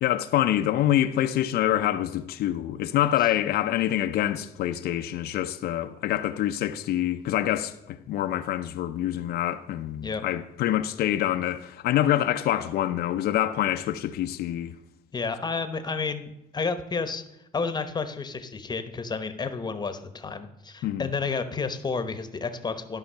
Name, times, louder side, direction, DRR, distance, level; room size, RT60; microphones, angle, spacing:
voice 1, 0.0-14.8 20.8-21.1, left 12 dB, 70° left, 0.6 m, -26 dB
voice 2, 15.1-17.2 17.5-23.0, left 4 dB, 25° left, 1.0 m, -31 dB
13.0 x 5.7 x 5.6 m
cardioid pair, 110°, 17 cm